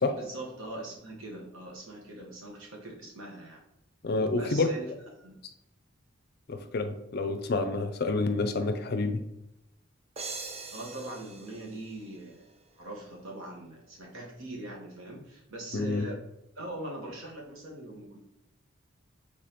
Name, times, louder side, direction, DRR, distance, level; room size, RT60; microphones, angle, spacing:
voice 1, 0.1-3.6 4.3-4.9 5.2-5.3 10.7-12.5 12.8-16.2 16.5-18.2, right 1 dB, 80° right, -2 dB, 1.2 m, -41 dB
voice 2, 4.0-4.7 6.5-9.2 15.7-16.1, left 3 dB, 50° left, 9 dB, 0.4 m, -28 dB
sound 1, 10.2-12.8, right 3 dB, 30° right, 0.5 m, -43 dB
5.2 x 3.4 x 2.9 m, 0.87 s
head